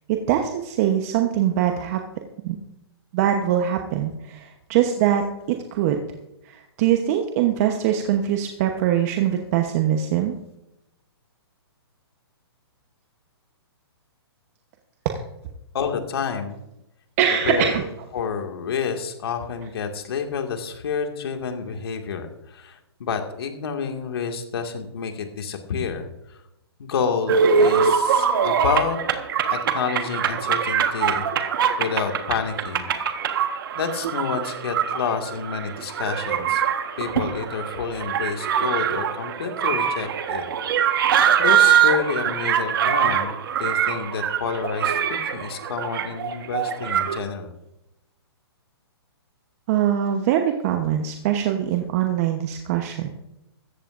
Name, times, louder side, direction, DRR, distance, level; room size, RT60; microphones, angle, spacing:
voice 1, 0.1-2.0 2.4-2.6 3.1-5.2 5.5-6.0 6.4-10.3 17.2-17.8 49.7-53.1, right 10 dB, 35° right, 4 dB, 1.1 m, -22 dB
voice 2, 15.7-16.6 17.4-17.8 18.1-26.4 26.8-29.0 29.5-31.3 31.8-32.9 33.7-36.6 37.0-40.4 40.9-41.1 41.4-47.5, left 6 dB, 65° left, 4 dB, 2.1 m, -29 dB
sound 1, 27.3-47.2, right 8 dB, 55° right, 1.4 m, -23 dB
16.0 x 14.5 x 2.6 m, 0.88 s
hypercardioid pair, 155°, 14 cm